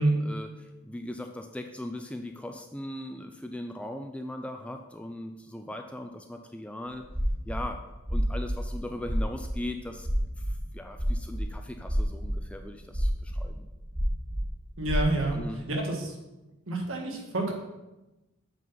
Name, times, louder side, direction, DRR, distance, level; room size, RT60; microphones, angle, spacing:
voice 1, 0.0-7.1 7.5-7.8 8.1-10.1 10.5-13.7 15.3-15.6, left 1 dB, 5° left, 5 dB, 0.3 m, -39 dB
sound 1, 7.0-7.6 7.9-15.3, equal, 25° right, 2.0 m, -30 dB
voice 2, 14.8-15.4 15.7-16.1 16.7-17.5, right 2 dB, 65° right, 1 dB, 1.4 m, -28 dB
7.4 x 4.0 x 5.6 m, 1.0 s
head